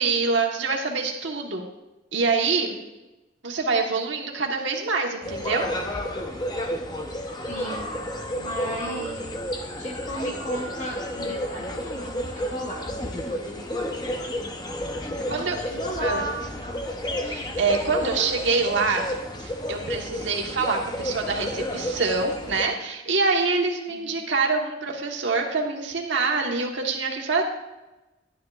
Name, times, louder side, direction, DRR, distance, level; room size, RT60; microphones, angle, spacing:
voice 1, 0.0-1.7 2.1-2.8 3.4-5.7 15.3-15.6 16.0-16.2 17.2-19.0 19.4-27.4, right 4 dB, 75° right, 1 dB, 1.3 m, -25 dB
sound 1, 5.2-22.6, equal, 20° left, 0.7 m, -31 dB
voice 2, 7.5-7.9 8.3-9.4 9.8-13.7 14.0-14.1 15.1-16.8 17.9-18.3 21.0-21.1 23.9-24.3, equal, 40° left, -2 dB, 1.2 m, -36 dB
11.5 x 9.3 x 2.4 m, 1.0 s
head